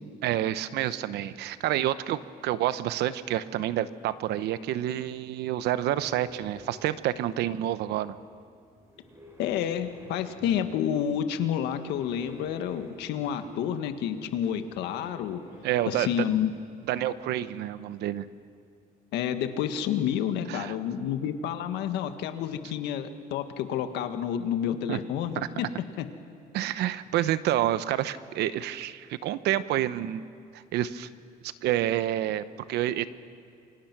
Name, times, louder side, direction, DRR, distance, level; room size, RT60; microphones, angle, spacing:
voice 1, 0.2-8.2 15.6-16.1 16.9-18.2 20.5-20.7 24.9-25.0 25.4-25.5 26.5-30.2 30.5-31.1 31.4-33.1, right 13 dB, 80° right, 14 dB, 0.9 m, -28 dB
sound 1, 5.5-17.2, equal, 15° right, 4.6 m, -52 dB
voice 2, 9.4-15.4 15.9-16.5 19.1-25.7 26.0-26.1, left 9 dB, 85° left, 8 dB, 1.7 m, -29 dB
28.5 x 24.0 x 6.1 m, 2.3 s
cardioid pair, 110°, 17 cm